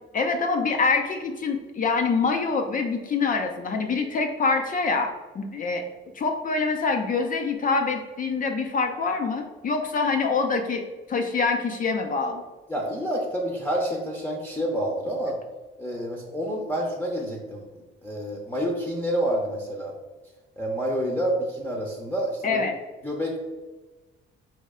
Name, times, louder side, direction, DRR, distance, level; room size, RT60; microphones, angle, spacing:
voice 1, 0.1-5.8 6.2-10.8 11.1-12.4 22.4-22.7, left 4 dB, 45° left, 4 dB, 0.5 m, -25 dB
voice 2, 12.7-15.4 15.8-17.6 18.0-20.0 20.6-22.6 23.0-23.4, equal, 10° left, -1 dB, 0.8 m, -28 dB
4.2 x 3.1 x 3.6 m, 1.2 s
cardioid pair, 90°, 20 cm